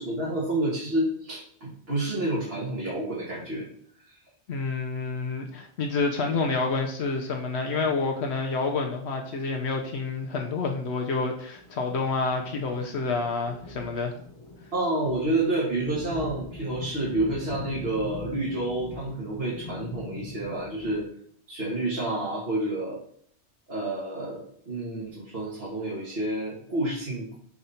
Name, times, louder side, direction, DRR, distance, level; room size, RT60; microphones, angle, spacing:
voice 1, 0.0-3.6 4.1-4.2 14.7-21.0 21.5-23.0 23.7-27.4, right 2 dB, 60° right, -7 dB, 2.0 m, -29 dB
voice 2, 4.5-14.2, left 4 dB, 75° left, 2 dB, 1.0 m, -28 dB
sound 1, 11.6-21.0, left 3 dB, 35° left, 0.8 m, -42 dB
5.3 x 4.7 x 4.2 m, 0.63 s
omnidirectional pair, 1.1 m